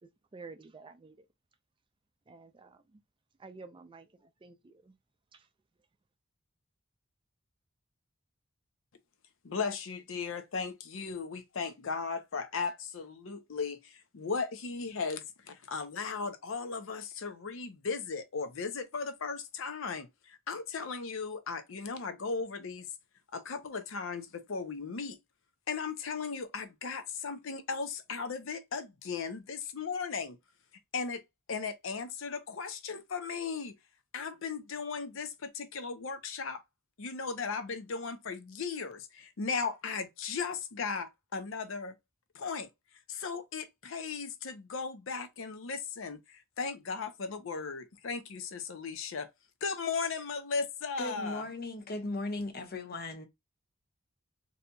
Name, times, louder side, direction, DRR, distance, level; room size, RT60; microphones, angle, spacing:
voice 1, 0.0-1.3 2.3-3.0 3.4-5.0 5.3-5.5, right 4 dB, 25° right, 0.4 m, -51 dB
voice 2, 9.4-22.9 23.3-25.2 25.7-30.4 30.9-33.8 34.1-36.6 37.0-42.0 42.3-49.3 49.6-51.4, left 5 dB, 70° left, 0.6 m, -37 dB
voice 3, 51.0-53.3, left 2 dB, 50° left, 0.9 m, -37 dB
4.1 x 2.7 x 2.2 m
head